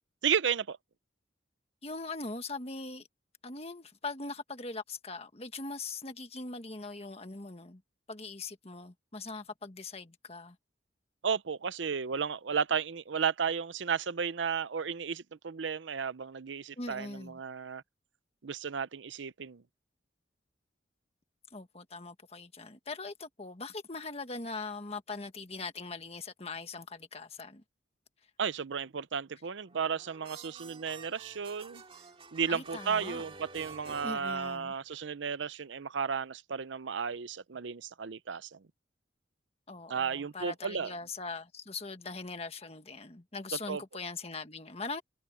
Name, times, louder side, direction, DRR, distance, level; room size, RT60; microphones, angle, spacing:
voice 1, 0.2-0.8 11.2-17.8 18.4-19.6 28.4-31.8 32.3-38.6 39.9-40.9 43.7-43.8, right 6 dB, 80° right, 0.6 m, -33 dB
voice 2, 1.8-3.1 3.4-7.8 8.1-10.6 16.8-17.4 21.5-27.6 32.5-33.2 34.0-34.7 39.7-45.0, left 3 dB, 35° left, 1.6 m, -41 dB
sound 1, 29.7-35.0, right 4 dB, 30° right, 2.9 m, -50 dB
head